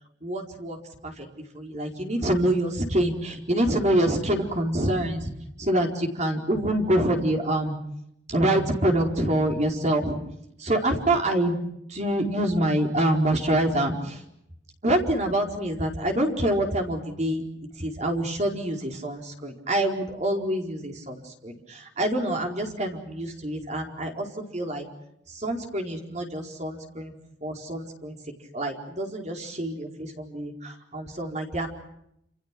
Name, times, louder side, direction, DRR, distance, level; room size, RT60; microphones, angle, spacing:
voice 1, 0.2-0.8 1.0-1.3 1.5-5.3 5.6-7.7 8.3-10.2 10.6-11.6 11.9-14.2 14.8-17.4 17.8-24.3 24.5-24.8 25.3-27.1 27.4-28.2 28.5-31.7, right 1 dB, 40° right, 2 dB, 4.6 m, -26 dB
28.5 x 28.5 x 6.1 m, 0.77 s
head